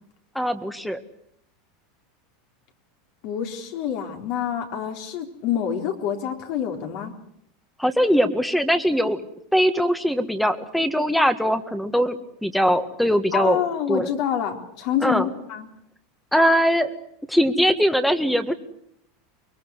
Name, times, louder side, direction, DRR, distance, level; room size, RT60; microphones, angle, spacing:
voice 1, 0.4-1.0 7.8-9.2 9.5-13.6 13.9-14.1 15.0-15.3 16.3-16.9 17.3-18.5, equal, ahead, 10 dB, 1.7 m, -21 dB
voice 2, 3.2-7.1 13.3-15.7, left 9 dB, 60° left, 3 dB, 3.9 m, -27 dB
24.5 x 21.5 x 8.2 m, 0.73 s
supercardioid pair, 125°, 0 cm